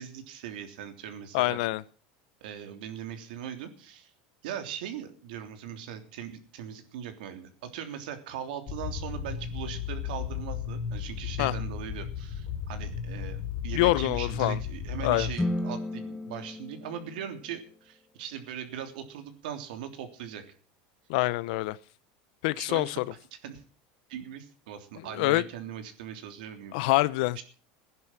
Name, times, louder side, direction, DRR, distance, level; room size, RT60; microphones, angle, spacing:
voice 1, 0.0-1.6 2.4-4.1 4.4-13.4 13.6-20.4 22.6-23.0 23.4-23.6 24.1-26.8 27.4-27.5, right 9 dB, 80° right, 3.2 m, -40 dB
voice 2, 1.3-1.8 11.4-11.5 13.7-14.6 15.0-15.3 21.1-21.8 22.4-23.1 25.1-25.4 26.7-27.4, left 20 dB, 70° left, 0.8 m, -25 dB
sound 1, 8.7-15.4, left 7 dB, 40° left, 3.4 m, -34 dB
sound 2, 15.3-17.8, left 1 dB, 10° left, 1.5 m, -34 dB
16.0 x 10.5 x 7.5 m
supercardioid pair, 150°, 5 cm